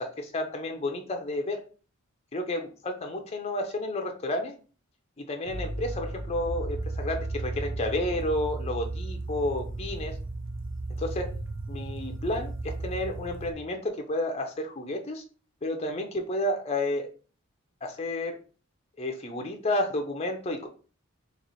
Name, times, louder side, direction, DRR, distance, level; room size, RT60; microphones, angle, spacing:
voice 1, 0.0-1.6 2.3-4.5 5.3-10.1 11.0-11.3 11.7-15.2 15.6-17.1 17.8-18.4 19.0-20.7, left 1 dB, 30° left, 3 dB, 0.5 m, -31 dB
sound 1, 5.5-13.5, right 2 dB, 60° right, 0.8 m, -35 dB
3.0 x 2.9 x 4.1 m, 0.37 s
head